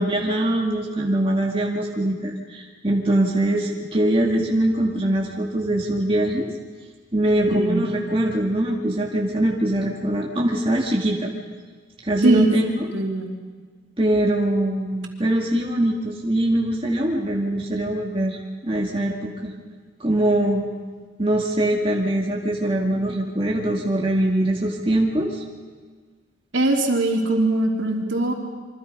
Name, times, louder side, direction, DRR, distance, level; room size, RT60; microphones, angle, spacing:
voice 1, 0.0-6.5 7.1-11.3 12.0-12.9 14.0-18.4 18.6-19.5 20.0-20.6 21.2-25.4, right 1 dB, 30° right, -1 dB, 2.1 m, -22 dB
voice 2, 7.5-7.8 12.2-12.5 12.9-13.3 26.5-28.3, right 2 dB, 70° right, 0 dB, 3.5 m, -20 dB
27.0 x 24.0 x 5.4 m, 1.5 s
head